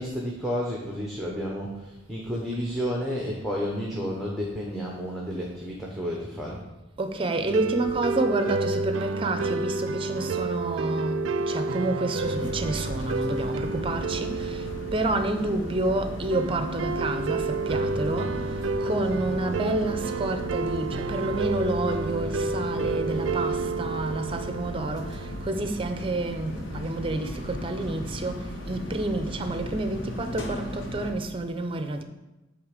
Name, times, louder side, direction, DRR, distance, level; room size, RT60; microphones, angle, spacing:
voice 1, 0.0-6.6, equal, ahead, 0.9 m, -31 dB
voice 2, 7.0-32.0, right 2 dB, 30° right, 0.6 m, -29 dB
sound 1, 7.5-25.5, right 3 dB, 85° right, 0.4 m, -30 dB
sound 2, 12.2-31.1, left 1 dB, 85° left, 1.1 m, -37 dB
8.5 x 3.4 x 6.5 m
head